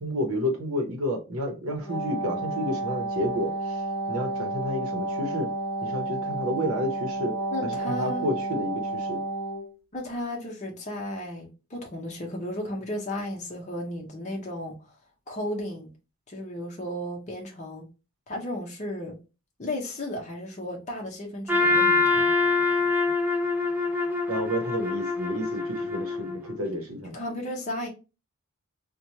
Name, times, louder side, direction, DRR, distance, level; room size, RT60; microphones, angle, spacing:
voice 1, 0.0-3.8 4.1-5.5 5.8-7.4 7.9-9.2 24.3-27.1, equal, 75° right, 0.8 m, -30 dB
Wind instrument woodwind instrument, 1.7-9.7, right 2 dB, 15° left, 1.5 m, -31 dB
voice 2, 7.5-8.3 9.9-14.9 15.3-15.9 16.3-17.9 18.3-19.2 19.6-22.4 27.1-27.9, left 1 dB, 35° left, 0.6 m, -34 dB
Trumpet, 21.5-26.6, left 3 dB, 10° right, 0.4 m, -25 dB
3.0 x 2.2 x 2.6 m
head